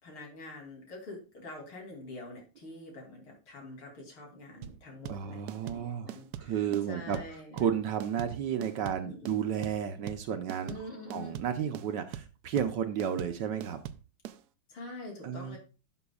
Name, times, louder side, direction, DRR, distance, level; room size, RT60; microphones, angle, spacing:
voice 1, 0.0-7.7 9.0-9.5 10.6-11.4 14.7-15.6, left 2 dB, 80° left, 0 dB, 3.7 m, -46 dB
sound 1, 4.6-14.4, right 11 dB, 80° right, 0.9 m, -42 dB
voice 2, 5.1-6.1 6.4-7.2 7.5-10.7 11.1-13.8 15.2-15.6, right 8 dB, 65° right, 8 dB, 1.2 m, -32 dB
11.0 x 7.0 x 2.3 m, 0.33 s
omnidirectional pair, 2.3 m